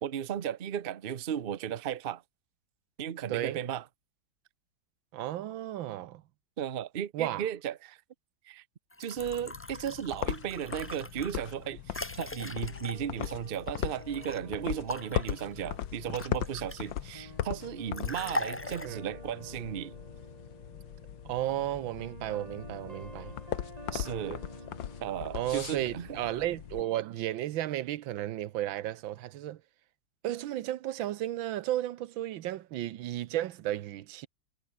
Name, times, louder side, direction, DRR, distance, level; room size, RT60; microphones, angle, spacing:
voice 1, 0.0-2.2 3.0-3.8 6.6-8.0 8.5-8.6 9.0-20.0 23.9-24.4 25.0-26.2, right 9 dB, 45° right, 0.7 m, -35 dB
voice 2, 3.3-3.6 5.1-6.2 7.1-7.5 18.8-19.0 21.2-23.3 25.3-29.6 30.2-34.3, right 13 dB, 90° right, 1.6 m, -33 dB
sound 1, 8.9-14.4 14.9-17.0 17.9-18.9, left 1 dB, 10° left, 0.9 m, -40 dB
sound 2, 9.2-26.8, left 11 dB, 75° left, 1.8 m, -39 dB
sound 3, 12.4-26.8, right 1 dB, 20° right, 5.7 m, -51 dB
omnidirectional pair, 2.1 m